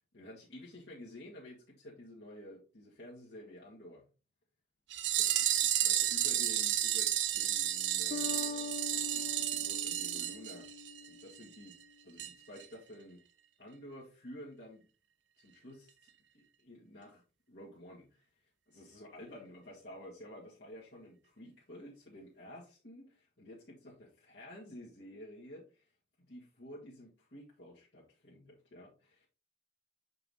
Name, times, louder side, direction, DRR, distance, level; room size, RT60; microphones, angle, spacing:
voice 1, 0.1-4.1 5.2-5.5 5.8-10.7 11.1-11.8 12.0-13.2 13.6-14.8 15.4-15.9 16.3-18.3 18.7-25.9 26.2-29.3, left 1 dB, 65° left, -5 dB, 1.7 m, -51 dB
sound 1, 4.9-11.1 11.4-11.5 11.7-11.8 12.2-12.3 12.6-12.7, right 12 dB, 75° right, 0.6 m, -32 dB
Bass guitar, 8.1-11.6, left 5 dB, 45° left, 0.4 m, -43 dB
6.8 x 5.6 x 2.8 m, 0.33 s
head